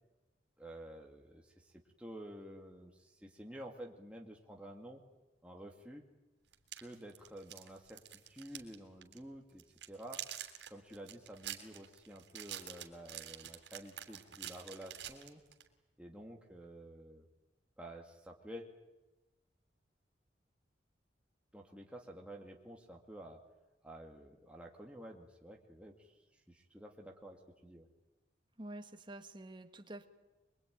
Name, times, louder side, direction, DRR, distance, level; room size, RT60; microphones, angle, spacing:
voice 1, 0.6-1.7 2.0-5.0 5.4-6.0 6.8-10.2 10.7-15.4 16.0-17.3 17.8-18.7 21.5-23.4 23.8-27.9, right 1 dB, 5° right, 0 dB, 2.2 m, -51 dB
sound 1, 6.5-8.8 9.0-9.2 9.6-15.7, right 11 dB, 80° right, 3.4 m, -47 dB
voice 2, 28.6-30.1, right 1 dB, 25° right, 7 dB, 1.7 m, -48 dB
24.0 x 23.0 x 9.4 m, 1.1 s
head